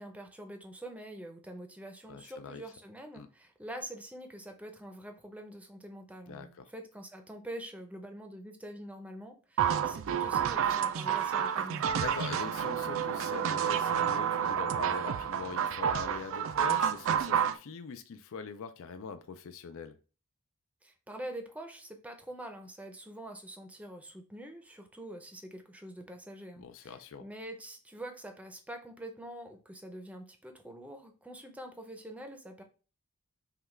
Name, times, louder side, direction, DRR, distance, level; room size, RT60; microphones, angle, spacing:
voice 1, 0.0-11.9 20.8-32.6, right 1 dB, 5° right, 0.6 m, -45 dB
voice 2, 2.1-2.6 3.1-3.3 6.3-6.7 12.0-20.0 26.6-27.3, left 5 dB, 65° left, 0.4 m, -43 dB
sound 1, 9.6-17.6, right 8 dB, 65° right, 0.4 m, -29 dB
5.7 x 2.3 x 3.2 m
head